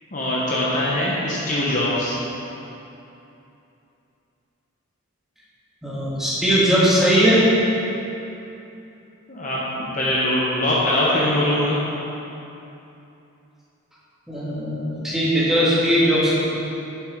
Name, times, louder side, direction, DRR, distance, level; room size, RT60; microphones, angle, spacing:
voice 1, 0.1-2.1 9.3-11.8, left 1 dB, 35° left, -6 dB, 0.9 m, -22 dB
voice 2, 5.8-7.5 14.3-16.4, equal, ahead, -9 dB, 1.5 m, -19 dB
6.8 x 5.5 x 5.0 m, 2.9 s
head